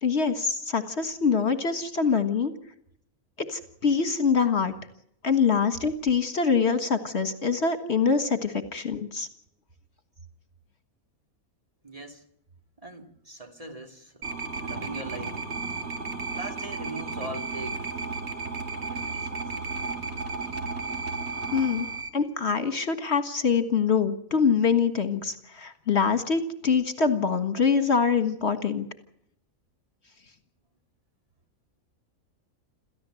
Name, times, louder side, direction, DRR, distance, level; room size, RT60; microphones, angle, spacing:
voice 1, 0.0-2.5 3.4-4.7 5.2-9.3 21.5-21.9 22.1-28.9, left 5 dB, 55° left, 1.9 m, -24 dB
voice 2, 11.8-12.2 12.8-14.3 14.6-15.4 16.3-17.9 18.7-19.4, right 2 dB, 25° right, 2.6 m, -40 dB
sound 1, 14.2-22.1, right 4 dB, 55° right, 2.4 m, -33 dB
28.0 x 14.5 x 7.7 m
omnidirectional pair, 1.4 m